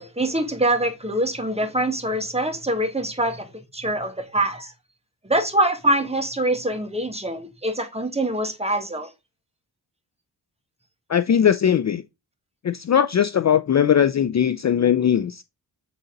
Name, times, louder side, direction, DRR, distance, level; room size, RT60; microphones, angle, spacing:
voice 1, 0.0-4.7 5.3-9.1, right 1 dB, 15° right, 1.8 m, -24 dB
voice 2, 11.1-12.0 12.6-15.4, left 8 dB, 40° left, 0.5 m, -19 dB
8.3 x 3.9 x 3.9 m
cardioid pair, 60°, 42 cm